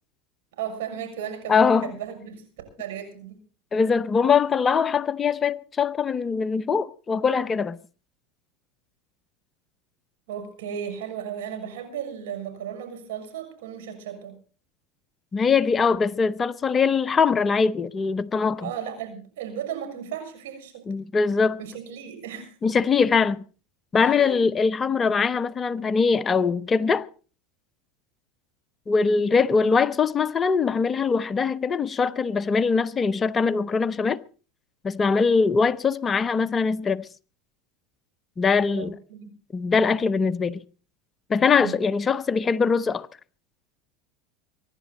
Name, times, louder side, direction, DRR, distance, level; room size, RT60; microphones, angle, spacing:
voice 1, 0.6-2.4 2.8-3.4 10.3-14.4 18.6-20.9 21.6-22.5 23.9-24.4 38.7-39.3 41.5-41.8, right 8 dB, 80° right, 6.2 m, -35 dB
voice 2, 1.5-1.9 3.7-7.8 15.3-18.7 20.9-21.6 22.6-23.4 23.9-27.1 28.9-34.2 34.8-37.1 38.4-38.9 39.5-40.6 41.3-43.1, left 5 dB, 25° left, 0.7 m, -22 dB
24.0 x 11.5 x 4.1 m
hypercardioid pair, 105°, 0 cm